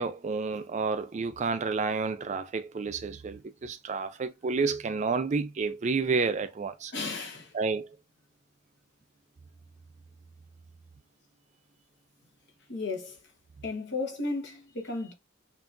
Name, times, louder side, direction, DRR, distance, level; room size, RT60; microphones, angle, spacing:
voice 1, 0.0-6.9 7.5-7.9, right 4 dB, 35° right, 0.4 m, -30 dB
voice 2, 6.9-7.6 12.7-13.2 13.6-15.1, left 3 dB, 55° left, 1.1 m, -34 dB
5.8 x 2.7 x 2.5 m
head